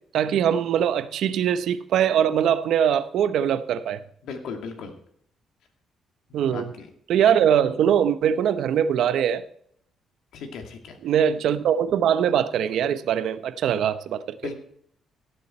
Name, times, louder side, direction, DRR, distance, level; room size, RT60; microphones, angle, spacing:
voice 1, 0.1-4.0 6.3-6.7 7.1-9.4 11.0-14.4, right 9 dB, 75° right, 0.8 m, -22 dB
voice 2, 4.2-4.9 6.3-6.9 10.3-11.0 14.4-14.5, left 5 dB, 80° left, 2.4 m, -36 dB
16.5 x 7.1 x 4.4 m
cardioid pair, 90°, 0 cm